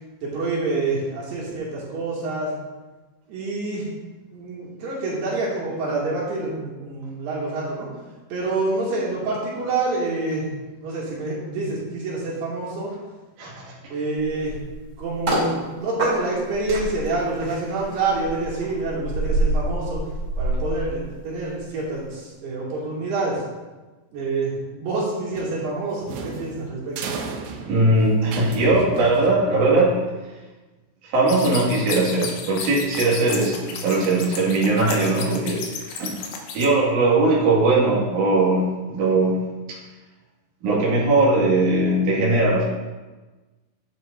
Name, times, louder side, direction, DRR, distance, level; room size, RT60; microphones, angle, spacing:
voice 1, 0.2-2.5 3.3-3.9 4.3-7.9 8.3-10.5 10.8-12.9 13.9-14.5 15.0-20.0 20.4-23.4 24.1-27.0, right 3 dB, 70° right, -7 dB, 4.5 m, -27 dB
sound 1, 14.2-15.5 16.0-21.6 21.9-22.1, right 2 dB, 20° right, 3.2 m, -27 dB
sound 2, 25.3-29.8, right 4 dB, 85° right, 3.1 m, -35 dB
voice 2, 27.6-30.0 31.1-35.6 36.0-36.1 36.5-39.4 40.6-42.6, right 2 dB, 50° right, -7 dB, 3.3 m, -19 dB
sound 3, 31.3-36.7, left 6 dB, 70° left, 2.8 m, -33 dB
11.0 x 10.5 x 2.7 m, 1.2 s
omnidirectional pair, 4.9 m